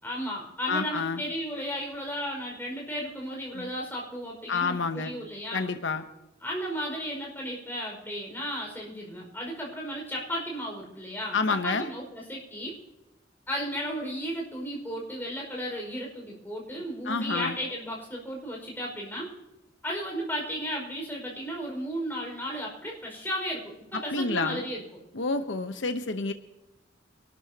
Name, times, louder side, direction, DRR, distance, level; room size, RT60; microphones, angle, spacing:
voice 1, 0.0-5.7 6.4-12.8 13.5-19.3 19.8-25.0, equal, 10° left, -2 dB, 5.3 m, -34 dB
voice 2, 0.7-1.2 3.5-3.7 4.5-5.1 5.5-6.0 11.3-11.9 17.1-17.5 24.1-24.6 25.1-26.3, left 4 dB, 85° left, 8 dB, 0.9 m, -28 dB
25.5 x 12.5 x 2.9 m, 0.99 s
head